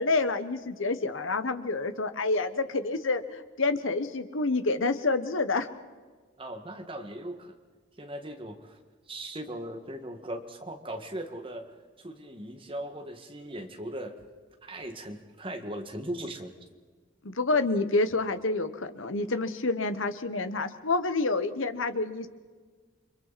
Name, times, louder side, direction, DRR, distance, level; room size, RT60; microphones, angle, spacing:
voice 1, 0.0-5.7 17.2-22.3, left 3 dB, 75° left, 10 dB, 1.3 m, -28 dB
voice 2, 6.4-7.6 8.0-8.8 9.1-14.2 14.6-16.5, right 1 dB, 25° right, 5 dB, 1.8 m, -39 dB
29.5 x 24.0 x 4.2 m, 1.4 s
head